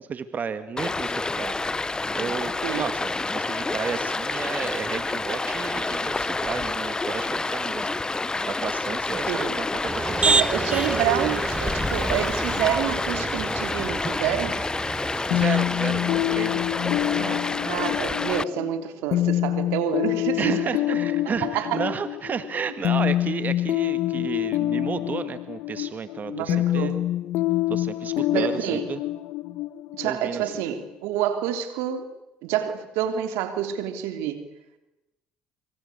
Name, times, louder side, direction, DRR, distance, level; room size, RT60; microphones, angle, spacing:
voice 1, 0.1-7.9 8.4-10.4 15.3-16.7 17.1-17.4 20.4-26.9 27.7-29.0 30.0-30.5, right 6 dB, 40° right, 11 dB, 1.8 m, -32 dB
Stream, 0.8-18.4, left 3 dB, 20° left, 0.9 m, -28 dB
Motor vehicle (road), 9.9-15.4, right 3 dB, 25° right, 1.1 m, -28 dB
voice 2, 10.2-14.6 17.6-20.5 20.9-21.0 21.4-21.8 26.3-27.0 28.3-28.9 29.9-32.1 32.4-34.4, right 10 dB, 80° right, 8 dB, 3.3 m, -28 dB
sound 1, 15.3-30.9, left 14 dB, 70° left, 1.2 m, -26 dB
26.0 x 24.5 x 8.5 m, 0.94 s
supercardioid pair, 70°, 4 cm